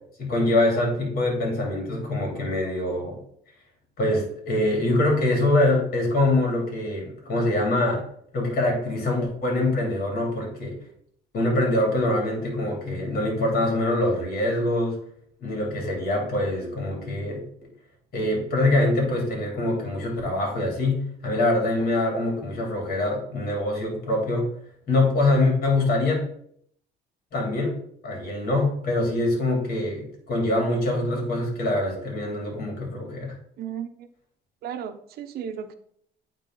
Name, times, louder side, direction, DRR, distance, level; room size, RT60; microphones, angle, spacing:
voice 1, 0.2-3.2 4.0-8.0 8.3-10.8 11.3-15.0 15.4-17.4 18.1-24.5 24.9-26.2 27.3-27.8 28.0-33.3, left 2 dB, 60° left, 0 dB, 2.9 m, -24 dB
voice 2, 33.6-34.1 34.6-35.7, right 8 dB, 65° right, 9 dB, 0.8 m, -34 dB
9.1 x 3.6 x 3.8 m, 0.65 s
cardioid pair, 110°, 17 cm